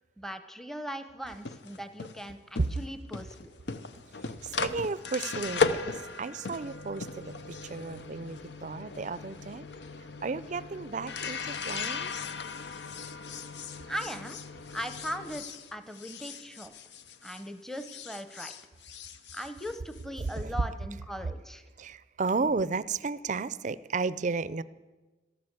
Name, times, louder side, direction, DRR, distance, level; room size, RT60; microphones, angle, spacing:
voice 1, 0.2-3.5 13.9-14.4 14.7-15.4 15.7-16.7 17.2-18.5 19.3-21.6, equal, ahead, 10 dB, 0.8 m, -39 dB
sound 1, 1.3-17.5 17.7-20.3, left 4 dB, 80° left, 0.8 m, -37 dB
voice 2, 4.4-9.7 10.2-12.1 20.4-20.6 21.8-24.6, right 4 dB, 45° right, 18 dB, 0.5 m, -33 dB
13.0 x 13.0 x 8.0 m, 1.2 s
head